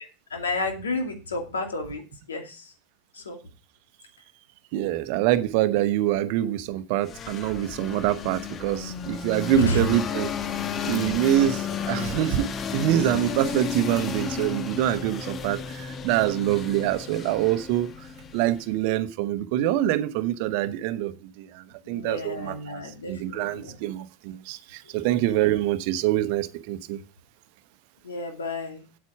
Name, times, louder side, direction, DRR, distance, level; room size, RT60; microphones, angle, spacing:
voice 1, 0.3-2.0 2.3-2.6 3.1-3.4 9.5-9.8 21.8-23.8 28.0-28.8, left 2 dB, 80° left, 2.5 m, -31 dB
voice 2, 4.7-10.3 10.8-18.1 18.3-22.8 23.1-27.0, right 12 dB, 55° right, 0.9 m, -25 dB
sound 1, 7.0-18.8, left 6 dB, 35° left, 1.1 m, -33 dB
8.6 x 8.3 x 4.7 m
figure-of-eight pair, 80°, 0 cm